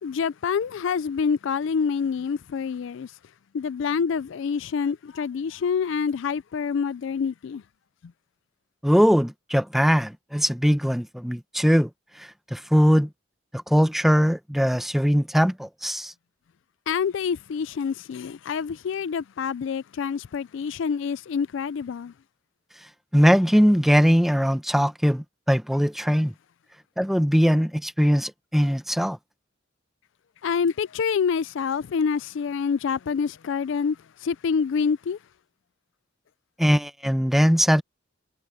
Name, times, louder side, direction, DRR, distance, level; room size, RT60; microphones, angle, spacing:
voice 1, 0.0-3.1 3.5-7.6 16.9-22.1 30.4-35.2, left 6 dB, 70° left, 0.4 m, -27 dB
voice 2, 8.8-11.9 12.2-13.1 13.5-16.1 23.1-26.3 27.0-29.2 36.6-37.8, equal, ahead, 0.9 m, -21 dB
head